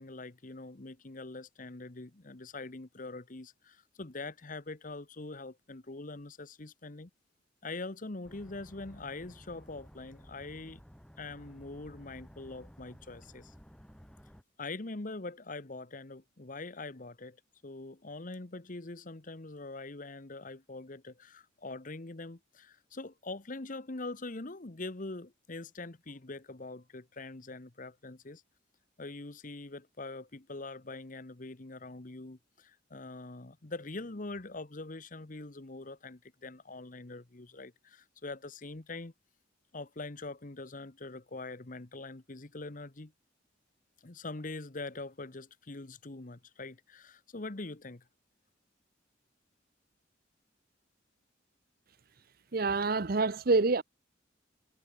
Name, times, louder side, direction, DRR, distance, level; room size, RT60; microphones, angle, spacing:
voice 1, 0.0-7.1 7.6-10.8 11.2-13.5 14.6-17.4 17.6-28.4 29.0-39.1 39.7-43.1 44.0-48.0, left 2 dB, 45° left, 1.1 m, -43 dB
sound 1, 8.2-14.4, equal, 5° left, 4.6 m, -54 dB
voice 2, 52.5-53.8, right 3 dB, 50° right, 0.8 m, -26 dB
head